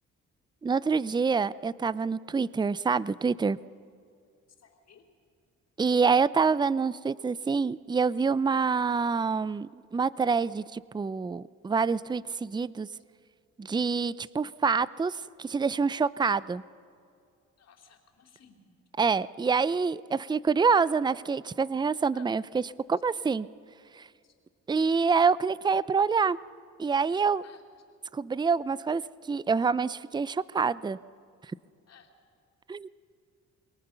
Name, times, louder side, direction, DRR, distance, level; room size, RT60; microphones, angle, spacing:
voice 1, 0.6-3.6 5.8-12.9 13.6-16.6 19.0-23.5 24.0-24.1 24.7-26.4 26.8-27.4 28.1-29.0 29.3-31.0 32.7-32.9, right 5 dB, 15° right, 19 dB, 0.5 m, -26 dB
voice 2, 4.6-5.0 17.6-18.6 22.1-22.3 27.4-27.6 31.9-32.1, left 7 dB, 55° left, 4 dB, 3.8 m, -56 dB
27.5 x 21.5 x 6.9 m, 2.4 s
cardioid pair, 90°, 30 cm